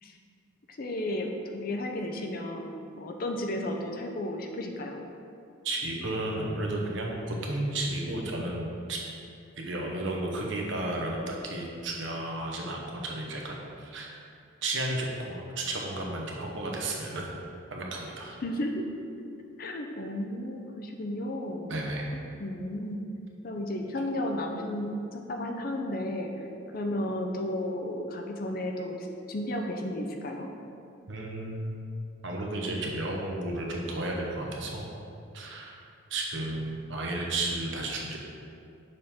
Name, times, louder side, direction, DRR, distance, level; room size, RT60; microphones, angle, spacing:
voice 1, 0.7-5.0 18.4-18.9 19.6-21.7 22.1-23.1 23.4-26.3 26.7-30.5, left 1 dB, 45° left, 3 dB, 0.5 m, -33 dB
voice 2, 5.6-9.0 9.6-14.1 14.6-17.3 17.7-18.3 21.7-22.1 31.1-31.8 32.2-34.9 35.3-35.8 36.1-38.2, right 2 dB, 60° right, -1 dB, 0.9 m, -33 dB
6.5 x 3.6 x 4.3 m, 2.5 s
head